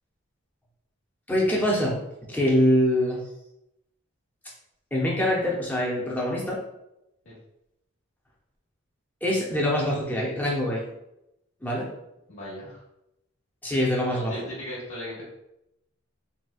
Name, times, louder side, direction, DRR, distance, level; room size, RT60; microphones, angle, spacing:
voice 1, 1.3-2.0 2.3-3.2 4.9-6.6 9.2-10.8 11.6-11.9 13.6-14.4, left 1 dB, 10° left, -4 dB, 0.6 m, -24 dB
voice 2, 12.3-12.8 14.1-15.2, left 1 dB, 70° left, -8 dB, 1.0 m, -37 dB
4.0 x 2.2 x 2.3 m, 0.85 s
head